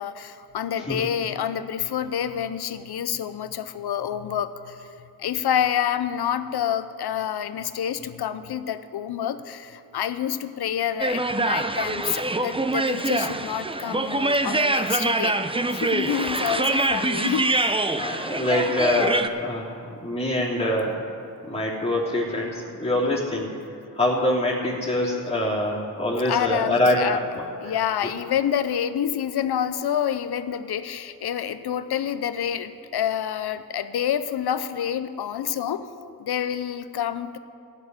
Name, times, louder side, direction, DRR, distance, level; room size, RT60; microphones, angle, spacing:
voice 1, 0.0-4.9 5.2-15.4 15.7-17.9 26.2-27.2 27.6-37.4, left 9 dB, 75° left, 12 dB, 0.7 m, -28 dB
voice 2, 0.7-1.0 16.4-16.6 17.5-28.1, left 1 dB, 15° left, -7 dB, 3.0 m, -25 dB
sound 1, 11.0-19.3, right 2 dB, 15° right, 0.7 m, -24 dB
13.0 x 7.2 x 9.6 m, 2.5 s
cardioid pair, 50°, 39 cm